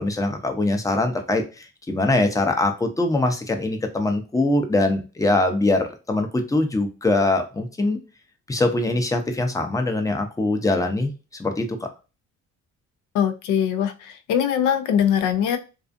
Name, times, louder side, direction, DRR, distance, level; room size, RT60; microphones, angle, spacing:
voice 1, 0.0-8.0 8.5-11.1 11.4-11.9, left 2 dB, 10° left, 5 dB, 0.5 m, -22 dB
voice 2, 13.1-15.6, left 9 dB, 90° left, 7 dB, 0.5 m, -22 dB
2.4 x 2.4 x 2.5 m, 0.30 s
cardioid pair, 90°, 30 cm